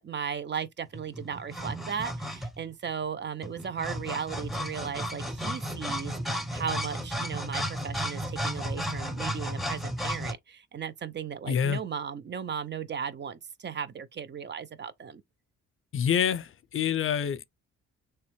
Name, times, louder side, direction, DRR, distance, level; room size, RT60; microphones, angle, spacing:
voice 1, 0.0-15.2, right 7 dB, 35° right, 0.6 m, -36 dB
sound 1, 0.9-2.7 3.4-10.3, equal, ahead, 0.7 m, -33 dB
voice 2, 11.5-11.8 15.9-17.4, left 8 dB, 45° left, 0.4 m, -27 dB
3.4 x 3.0 x 3.1 m
cardioid pair, 90°, 30 cm